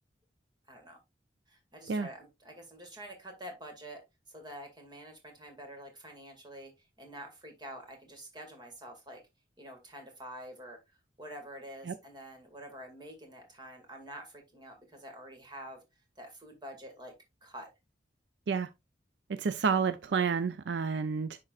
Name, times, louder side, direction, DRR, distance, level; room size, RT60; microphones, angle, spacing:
voice 1, 0.7-1.0 1.5-4.0 4.3-6.7 7.0-9.2 9.6-10.8 11.2-15.8 16.2-17.1 17.4-17.7, right 1 dB, 25° right, 2.1 m, -47 dB
voice 2, 19.3-21.4, right 5 dB, 70° right, 0.5 m, -30 dB
11.0 x 3.8 x 2.4 m
head